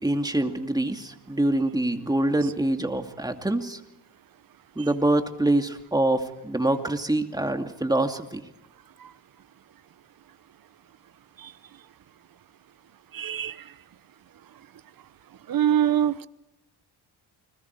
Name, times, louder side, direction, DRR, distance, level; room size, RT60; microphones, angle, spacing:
voice 1, 0.0-3.8 4.8-8.4, right 1 dB, 10° right, 5 dB, 2.5 m, -25 dB
voice 2, 13.1-13.6 15.5-16.2, right 10 dB, 55° right, 16 dB, 1.0 m, -23 dB
29.5 x 21.0 x 4.8 m, 0.99 s
cardioid pair, 75°, 42 cm